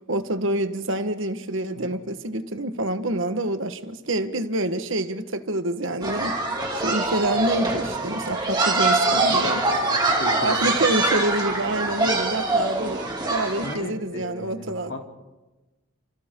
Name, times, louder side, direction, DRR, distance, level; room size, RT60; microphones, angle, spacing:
voice 1, 0.1-6.4 6.7-9.5 10.4-14.9, right 1 dB, 60° right, 1.4 m, -27 dB
sound 1, 6.0-13.7, right 2 dB, 20° right, 2.6 m, -24 dB
voice 2, 9.1-10.9 13.6-15.0, left 2 dB, 65° left, 3.2 m, -35 dB
29.5 x 28.5 x 3.8 m
head